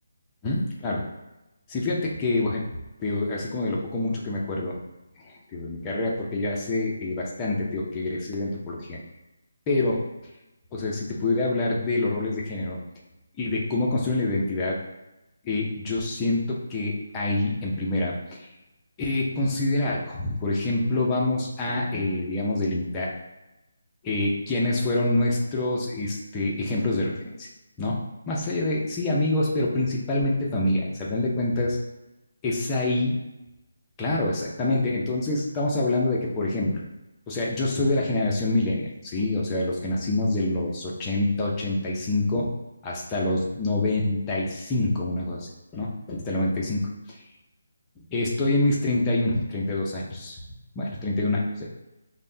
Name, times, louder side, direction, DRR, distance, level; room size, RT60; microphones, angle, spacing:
voice 1, 0.4-1.1 1.7-2.6 3.0-4.8 5.2-9.0 9.7-10.0 10.7-12.8 13.4-14.8 15.4-18.5 19.0-23.1 24.0-27.5 27.8-28.0 28.3-31.8 32.4-33.2 34.0-36.8 37.3-42.5 42.8-47.2 48.0-50.4 50.8-51.7, left 2 dB, 10° left, -3 dB, 0.4 m, -26 dB
5.5 x 2.0 x 2.6 m, 0.99 s
hypercardioid pair, 175°, 0 cm